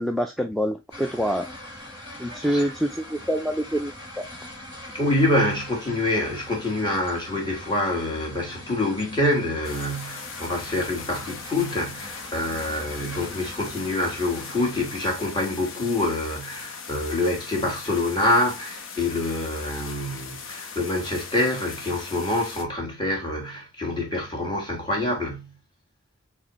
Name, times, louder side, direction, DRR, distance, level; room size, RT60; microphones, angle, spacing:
voice 1, 0.0-1.5 2.2-3.9, equal, ahead, 0.3 m, -26 dB
sound 1, 0.9-15.1, left 1 dB, 60° left, 2.6 m, -42 dB
voice 2, 2.4-2.7 4.9-25.5, left 1 dB, 20° left, 1.3 m, -26 dB
sound 2, 9.6-22.6, left 5 dB, 80° left, 0.9 m, -39 dB
4.2 x 3.5 x 2.9 m
head